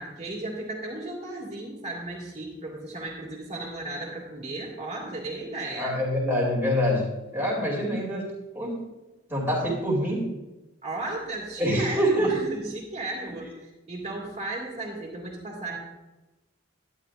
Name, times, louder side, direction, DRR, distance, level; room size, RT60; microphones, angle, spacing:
voice 1, 0.0-5.9 10.8-15.8, right 2 dB, 35° right, -3 dB, 2.2 m, -35 dB
voice 2, 5.7-8.3 8.5-8.8 9.3-10.3 11.6-12.3, equal, 10° right, -4 dB, 2.7 m, -25 dB
11.5 x 9.7 x 2.5 m, 1.1 s
head